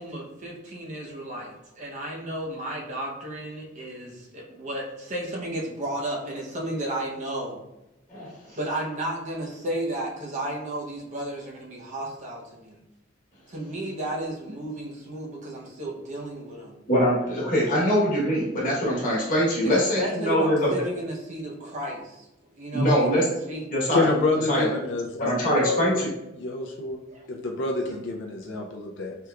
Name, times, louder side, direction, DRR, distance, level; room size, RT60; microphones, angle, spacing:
voice 1, 0.0-7.6 8.5-12.8 13.5-16.8 19.6-22.3 22.6-23.7 27.1-27.5, right 1 dB, 40° right, -2 dB, 0.7 m, -33 dB
voice 2, 16.9-20.7 22.7-23.2 23.7-24.1 24.5-24.7 25.2-26.1, equal, 45° left, -4 dB, 1.1 m, -23 dB
voice 3, 23.9-26.1 26.4-27.0 27.3-29.2, left 2 dB, 70° left, 2 dB, 0.4 m, -28 dB
3.4 x 2.9 x 2.3 m, 0.94 s
head